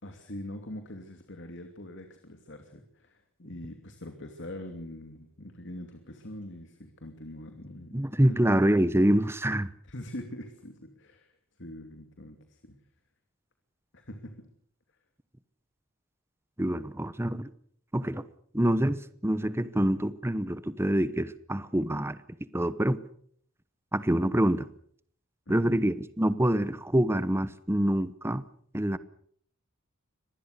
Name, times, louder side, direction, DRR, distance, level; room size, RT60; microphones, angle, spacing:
voice 1, 0.0-8.4 9.8-11.3 11.6-12.7 13.9-14.5 25.5-25.8, left 1 dB, 60° left, 2.8 m, -43 dB
voice 2, 7.9-9.7 16.6-17.5 17.9-18.2 18.5-22.2 22.5-23.0 23.9-24.7 25.5-28.4 28.7-29.0, right 1 dB, 10° right, 0.9 m, -26 dB
25.0 x 19.5 x 6.7 m
head